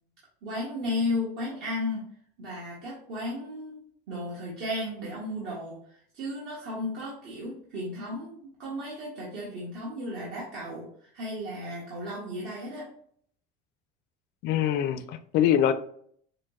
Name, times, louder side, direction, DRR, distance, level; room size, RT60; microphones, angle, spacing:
voice 1, 0.4-2.1 2.4-3.8 4.1-5.8 6.1-12.9, left 1 dB, 60° right, -6 dB, 1.4 m, -34 dB
voice 2, 14.4-15.7, left 10 dB, 55° left, 10 dB, 0.4 m, -24 dB
6.4 x 2.1 x 2.4 m, 0.62 s
cardioid pair, 135°, 21 cm